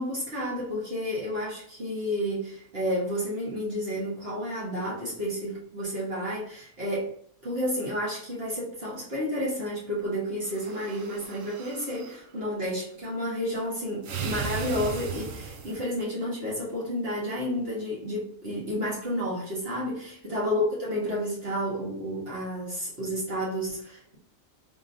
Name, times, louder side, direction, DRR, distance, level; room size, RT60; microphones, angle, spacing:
voice 1, 0.0-7.1 7.4-24.2, equal, 50° right, -6 dB, 1.7 m, -31 dB
sound 1, 10.4-12.2 14.0-16.0, right 6 dB, 85° right, 1.1 m, -36 dB
3.8 x 3.5 x 2.7 m, 0.64 s
omnidirectional pair, 1.3 m